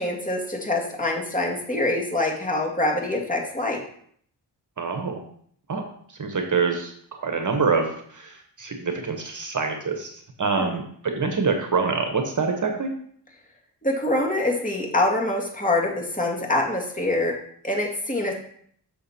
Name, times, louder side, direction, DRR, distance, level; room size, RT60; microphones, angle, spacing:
voice 1, 0.0-3.8 10.5-10.8 13.8-17.3 17.6-18.3, left 2 dB, 20° left, -1 dB, 1.9 m, -25 dB
voice 2, 4.8-5.2 5.7-5.8 6.1-12.9, right 4 dB, 45° right, 5 dB, 1.1 m, -26 dB
6.5 x 6.1 x 4.3 m, 0.62 s
cardioid pair, 80°, 42 cm